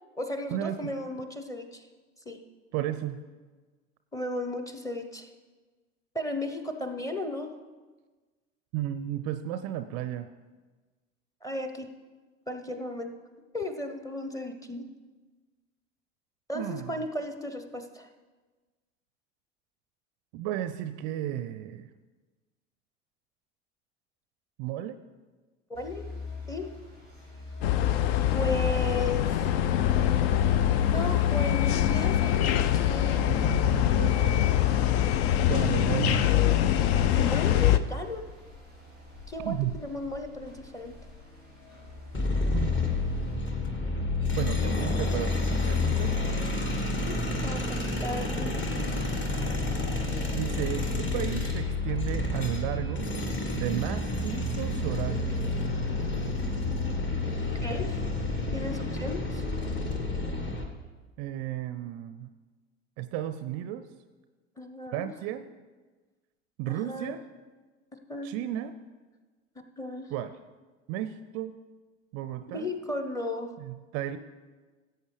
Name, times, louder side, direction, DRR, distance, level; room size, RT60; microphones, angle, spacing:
voice 1, 0.2-1.8 2.3-2.4 4.1-5.3 6.1-7.5 11.4-11.9 12.5-13.1 13.5-14.8 16.5-18.1 25.7-26.1 26.5-26.7 28.3-29.5 30.9-33.2 37.2-38.3 39.3-40.9 46.9-48.6 57.6-58.0 58.5-59.4 64.6-65.1 66.7-67.2 68.1-68.4 69.8-70.1 72.5-73.5, left 1 dB, 10° left, 6 dB, 0.9 m, -35 dB
voice 2, 2.7-3.2 8.7-10.3 16.5-17.0 20.3-21.9 24.6-25.0 33.2-34.5 35.4-36.3 39.4-39.8 42.5-42.8 44.3-46.2 50.2-53.1 53.5-55.3 61.2-62.3 63.0-63.9 64.9-65.5 66.6-67.2 68.2-68.7 70.1-70.4 70.9-71.6 72.1-72.7 73.6-74.2, right 12 dB, 40° right, 11 dB, 0.5 m, -33 dB
sound 1, 25.7-43.4, left 3 dB, 85° left, 3.6 m, -45 dB
sound 2, 27.6-37.8, left 11 dB, 55° left, 0.6 m, -24 dB
sound 3, 42.1-60.6, left 2 dB, 30° left, 1.6 m, -29 dB
16.5 x 7.8 x 3.3 m, 1.3 s
figure-of-eight pair, 75°, 38 cm